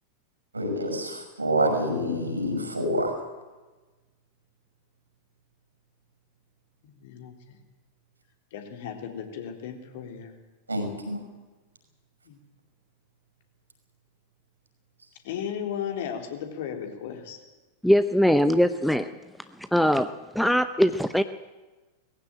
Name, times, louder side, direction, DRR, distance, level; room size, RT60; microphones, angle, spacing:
voice 1, 0.5-3.1 10.7-11.2, equal, 80° right, 5 dB, 5.7 m, -27 dB
voice 2, 6.8-7.6 8.5-10.3 12.3-12.4 15.2-17.4, left 8 dB, 55° left, 4 dB, 3.4 m, -35 dB
voice 3, 17.8-19.1 19.7-20.1 20.3-21.2, equal, ahead, 11 dB, 0.7 m, -21 dB
19.5 x 15.5 x 9.1 m, 1.2 s
figure-of-eight pair, 90°, 0 cm